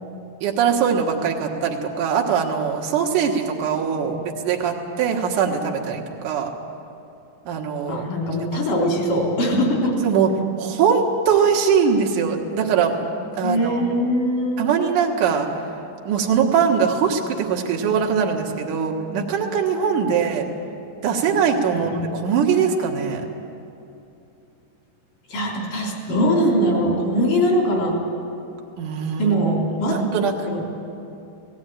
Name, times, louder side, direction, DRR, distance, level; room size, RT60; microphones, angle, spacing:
voice 1, 0.4-6.5 7.5-8.0 8.5-8.6 10.0-10.3 10.6-13.9 14.6-15.6 16.1-20.5 21.0-23.3 28.8-29.4 29.8-30.4, right 6 dB, 70° right, 1 dB, 2.9 m, -21 dB
voice 2, 7.9-9.9 13.4-14.7 20.1-20.2 21.7-22.0 25.3-27.9 29.2-30.0 30.5-30.7, equal, 75° left, -1 dB, 5.0 m, -21 dB
18.0 x 16.0 x 9.2 m, 2.7 s
omnidirectional pair, 3.8 m